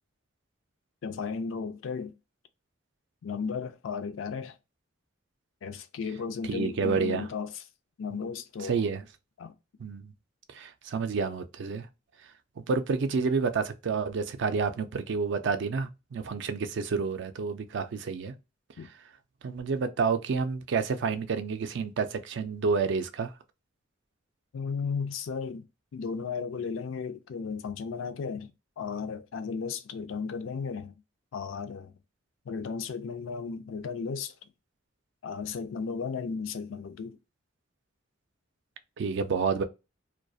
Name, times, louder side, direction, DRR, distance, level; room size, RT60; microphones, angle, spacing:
voice 1, 1.0-2.1 3.2-4.6 5.6-7.5 8.0-8.9 9.4-9.5 18.8-18.9 24.5-25.6 25.9-31.0 31.3-31.9 32.5-34.3 35.2-37.2, left 5 dB, 75° left, 0.4 m, -35 dB
voice 2, 6.4-7.3 8.7-9.0 9.8-10.1 10.5-11.9 12.6-18.3 19.4-23.3 39.0-39.6, right 5 dB, 65° right, 0.4 m, -29 dB
2.3 x 2.2 x 2.5 m
head